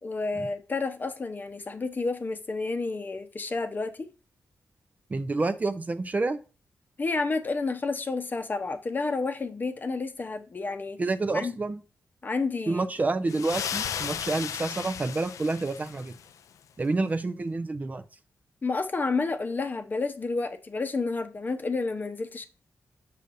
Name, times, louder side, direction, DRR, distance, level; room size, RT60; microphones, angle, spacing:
voice 1, 0.0-4.1 7.0-11.0 11.3-11.6 12.2-12.8 18.6-22.5, left 3 dB, 35° left, 0.8 m, -30 dB
voice 2, 5.1-6.4 11.0-11.8 12.7-16.1 16.8-18.0, right 3 dB, 30° right, 0.5 m, -28 dB
sound 1, 13.3-16.3, left 8 dB, 85° left, 0.4 m, -35 dB
6.7 x 6.5 x 2.6 m
wide cardioid pair, 110°, 5 cm